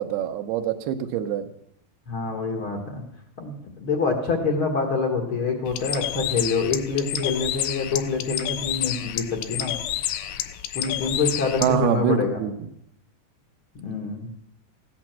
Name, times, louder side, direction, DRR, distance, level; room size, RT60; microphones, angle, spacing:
voice 1, 0.0-1.5 11.6-12.7, right 8 dB, 75° right, 8 dB, 2.7 m, -25 dB
voice 2, 2.1-3.0 3.4-9.7 10.7-12.4 13.8-14.3, left 4 dB, 60° left, 2 dB, 1.3 m, -26 dB
Bird, 5.7-11.8, left 12 dB, 80° left, 2.4 m, -30 dB
15.5 x 8.5 x 7.4 m, 0.76 s
omnidirectional pair, 4.8 m